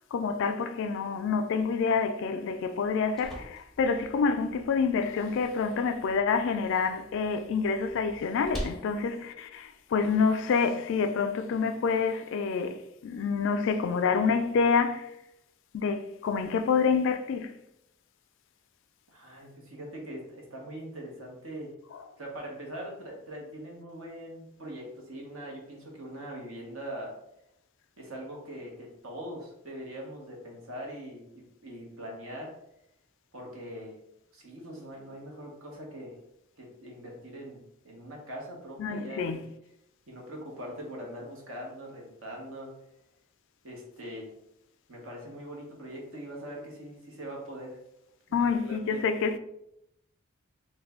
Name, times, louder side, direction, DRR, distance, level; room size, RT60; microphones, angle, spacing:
voice 1, 0.1-15.1 15.7-17.6 38.8-39.4 48.3-49.4, left 5 dB, 60° left, 0.3 m, -27 dB
sound 1, 2.7-10.7, equal, ahead, 0.5 m, -46 dB
voice 2, 19.1-21.7 22.2-27.2 28.0-32.5 33.3-34.0 34.3-36.2 36.6-39.5 40.1-42.7 43.6-44.3 44.9-47.8 48.3-49.0, equal, 75° right, 1.0 m, -42 dB
3.2 x 2.2 x 3.5 m
head